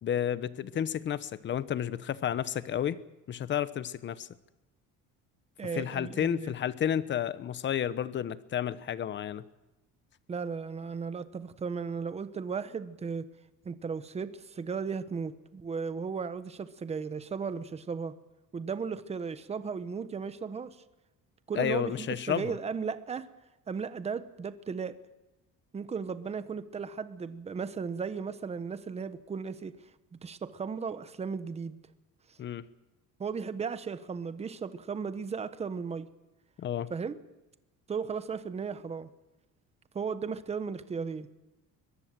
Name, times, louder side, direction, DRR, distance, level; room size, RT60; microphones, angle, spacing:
voice 1, 0.0-3.0 3.3-4.3 5.7-9.4 21.5-22.5 32.4-32.6 36.6-36.9, left 9 dB, 35° left, 15 dB, 1.0 m, -31 dB
voice 2, 5.6-6.5 10.3-13.3 13.6-18.1 18.5-20.8 21.5-23.3 23.7-25.0 25.7-29.8 30.2-31.8 33.2-36.1 36.9-37.2 37.9-39.1 39.9-41.3, right 5 dB, 20° right, 13 dB, 1.1 m, -35 dB
22.5 x 21.5 x 7.6 m, 1.0 s
cardioid pair, 160°, 32 cm